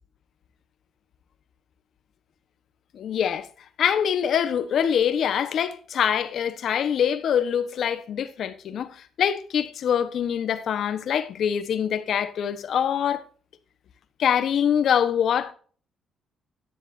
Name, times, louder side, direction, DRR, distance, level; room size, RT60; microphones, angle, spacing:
voice 1, 2.9-3.5 3.8-13.2 14.2-15.5, left 8 dB, 65° left, 1.1 m, -24 dB
13.0 x 10.5 x 2.7 m
cardioid pair, 90°, 0 cm